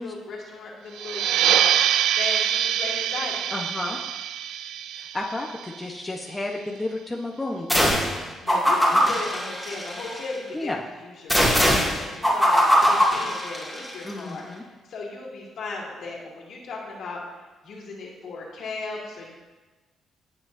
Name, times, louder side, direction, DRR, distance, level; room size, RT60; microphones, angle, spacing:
voice 1, 0.0-1.7 2.1-3.5 8.4-10.7 11.0-17.2 17.6-19.3, left 3 dB, 70° left, -3 dB, 2.5 m, -36 dB
sound 1, 1.0-6.2, right 10 dB, 90° right, 0.3 m, -25 dB
voice 2, 3.5-4.0 5.0-8.1 8.9-9.0 10.5-10.8 14.0-14.6, left 2 dB, 15° left, 0 dB, 0.9 m, -32 dB
sound 2, 7.7-8.2 8.5-10.2 11.3-13.9, equal, ahead, 2.3 m, -21 dB
16.5 x 6.1 x 2.7 m, 1.2 s
cardioid pair, 90°, 0 cm